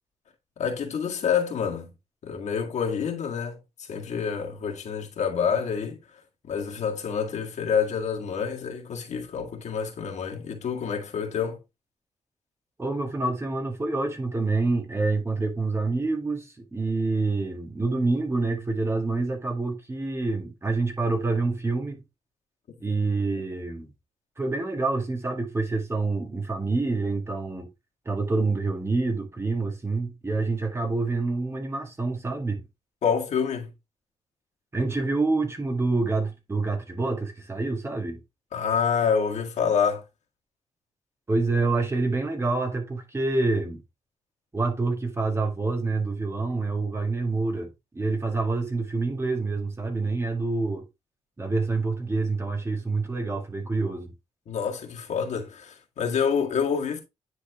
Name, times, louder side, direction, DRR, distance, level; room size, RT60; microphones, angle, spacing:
voice 1, 0.6-1.9 2.2-11.6 22.9-23.0 33.0-33.7 38.5-40.0 54.5-57.0, left 6 dB, 75° left, 1.9 m, -27 dB
voice 2, 12.8-22.0 22.8-23.9 24.4-27.7 28.1-32.6 34.7-38.2 41.3-43.8 44.5-50.8 51.4-54.1, right 3 dB, 20° right, 1.9 m, -27 dB
9.7 x 4.0 x 3.4 m
cardioid pair, 100°, 12 cm